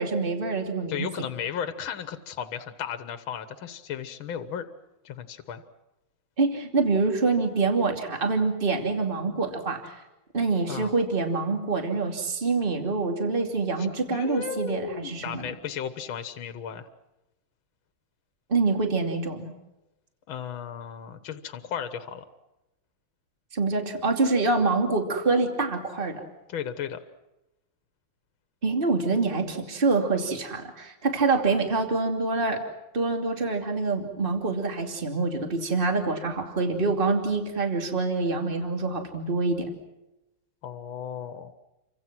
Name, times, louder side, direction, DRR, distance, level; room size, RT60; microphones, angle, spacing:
voice 1, 0.0-1.1 6.4-10.0 10.3-15.5 18.5-19.5 23.5-26.2 28.6-32.6 32.9-39.7, right 3 dB, 25° right, 3 dB, 2.9 m, -26 dB
voice 2, 0.9-4.7 5.0-5.6 10.7-10.9 13.8-16.9 20.3-22.2 26.5-27.0 40.6-41.5, left 8 dB, 80° left, 9 dB, 2.0 m, -35 dB
29.5 x 25.0 x 6.1 m, 0.97 s
omnidirectional pair, 2.2 m